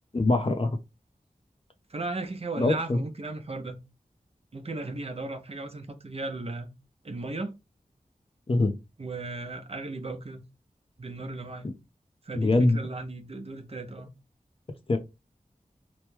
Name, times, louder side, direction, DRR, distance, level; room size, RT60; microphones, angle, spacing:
voice 1, 0.1-0.7 2.6-3.0 8.5-8.7 12.3-12.8 14.9-15.0, left 2 dB, 40° left, 0.6 m, -23 dB
voice 2, 1.9-3.8 4.5-6.7 7.0-7.5 9.0-10.4 11.0-11.7 12.2-14.1, right 2 dB, 45° right, 0.7 m, -36 dB
3.0 x 2.1 x 3.3 m
wide cardioid pair, 45°, 15 cm